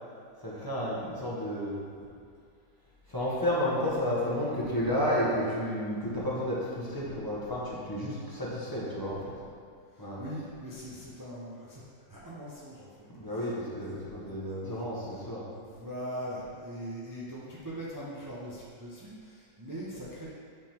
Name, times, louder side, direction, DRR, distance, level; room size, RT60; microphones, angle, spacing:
voice 1, 0.4-1.7 3.1-9.3 10.0-10.2 13.1-15.4, equal, 15° left, -7 dB, 1.0 m, -31 dB
voice 2, 4.5-4.9 7.0-7.5 9.1-9.4 9.9-14.9 15.4-20.3, equal, 25° right, -8 dB, 0.4 m, -42 dB
8.2 x 3.8 x 4.4 m, 2.3 s
omnidirectional pair, 1.9 m